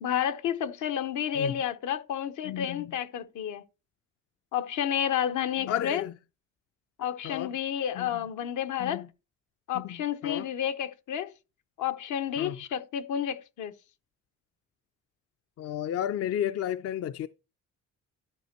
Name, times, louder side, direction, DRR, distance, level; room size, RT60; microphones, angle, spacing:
voice 1, 0.0-3.6 4.5-6.0 7.0-9.0 9.7-11.3 11.8-13.7, left 9 dB, 80° left, 0.9 m, -30 dB
voice 2, 2.4-2.8 5.6-6.1 7.2-7.5 8.0-8.1 8.8-9.1 9.7-10.0 10.2-10.4 12.4-12.6 15.6-17.3, left 11 dB, 55° left, 0.5 m, -32 dB
12.5 x 5.0 x 4.5 m
cardioid pair, 90°, 30 cm